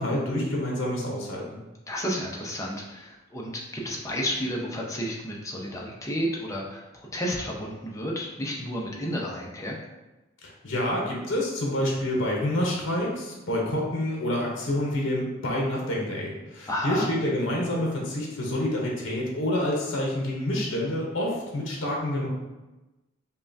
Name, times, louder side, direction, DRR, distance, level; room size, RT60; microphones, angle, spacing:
voice 1, 0.0-1.6 10.4-22.3, left 1 dB, 60° left, -2 dB, 0.8 m, -28 dB
voice 2, 1.9-9.8 16.7-17.1, equal, 15° left, -2 dB, 0.5 m, -31 dB
5.4 x 2.3 x 2.6 m, 1.1 s
head